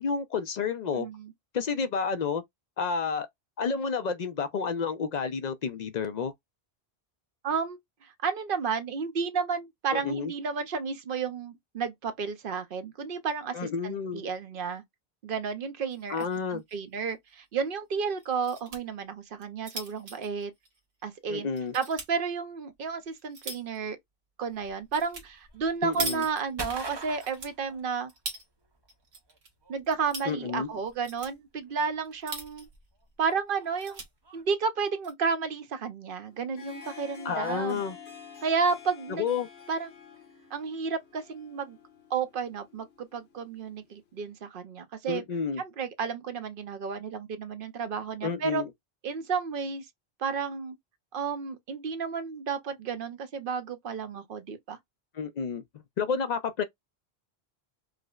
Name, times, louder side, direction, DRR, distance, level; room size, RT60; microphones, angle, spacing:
voice 1, 0.0-1.1 1.5-2.4 2.8-3.3 3.6-6.3 9.9-10.3 13.5-14.2 16.1-16.6 21.3-21.7 25.8-26.2 30.3-30.7 37.2-38.0 39.2-39.5 45.1-45.6 48.2-48.7 55.1-55.6 56.0-56.6, left 5 dB, 55° left, 0.5 m, -30 dB
voice 2, 0.9-1.3 7.4-14.8 15.2-16.2 16.5-20.5 21.0-21.5 21.7-24.0 24.4-28.1 29.7-32.7 33.2-34.0 34.3-37.8 38.4-39.3 39.7-39.9 40.5-41.8 42.1-45.2 45.6-48.6 49.0-49.9 50.2-50.8 51.1-54.8, right 5 dB, 60° right, 0.8 m, -32 dB
sound 1, 15.9-16.4 16.7-16.8 17.1-17.2 18.2-18.8 19.3-21.1 21.6-22.1 22.7-23.8 24.9-25.3 25.5-26.8 27.2-28.5 28.9-29.5 29.8-30.3 30.9-31.3 32.0-32.8 33.2-33.3 33.6-34.1 34.8-35.1, right 3 dB, 85° right, 1.3 m, -40 dB
sound 2, 24.5-28.4 28.7-34.4, right 3 dB, 30° right, 0.6 m, -45 dB
Harp, 36.3-44.0, left 7 dB, 80° left, 1.2 m, -49 dB
4.8 x 2.0 x 2.3 m
omnidirectional pair, 1.0 m